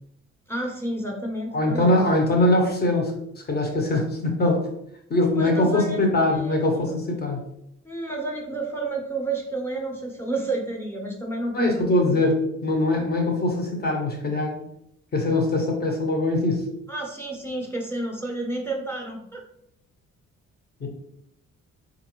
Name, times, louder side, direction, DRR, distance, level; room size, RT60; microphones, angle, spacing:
voice 1, 0.5-2.0 5.4-6.6 7.8-11.9 16.9-19.4, right 2 dB, 10° left, 0 dB, 0.9 m, -30 dB
voice 2, 1.5-3.1 3.5-4.7 5.1-7.5 11.5-14.6 15.1-16.6 20.8-20.9, left 2 dB, 30° left, 2 dB, 1.0 m, -22 dB
3.8 x 2.6 x 3.0 m, 0.76 s
cardioid pair, 90°, 30 cm